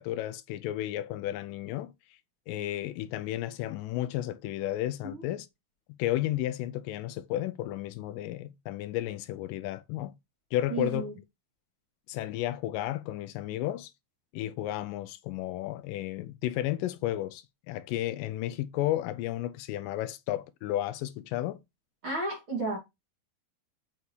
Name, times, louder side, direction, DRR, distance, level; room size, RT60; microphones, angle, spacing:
voice 1, 0.0-1.9 2.5-5.5 6.0-10.1 10.5-11.1 12.1-13.9 14.3-21.6, left 14 dB, 85° left, 2.0 m, -33 dB
voice 2, 10.7-11.1 22.0-22.8, right 3 dB, 35° right, 3.2 m, -32 dB
6.9 x 5.4 x 3.2 m
omnidirectional pair, 4.3 m